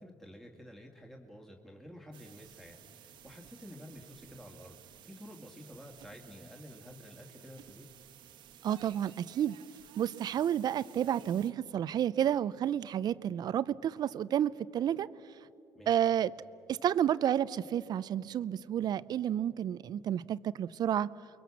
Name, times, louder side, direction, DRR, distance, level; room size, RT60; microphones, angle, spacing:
voice 1, 0.0-7.9 15.7-16.0, equal, 5° left, 0 dB, 2.3 m, -51 dB
sound 1, 2.1-11.5, right 10 dB, 70° right, 1.4 m, -55 dB
voice 2, 8.6-9.6 10.0-15.1 15.9-16.3 16.7-21.1, right 10 dB, 55° right, 17 dB, 0.6 m, -30 dB
28.5 x 22.5 x 7.2 m, 2.7 s
supercardioid pair, 80°, 8 cm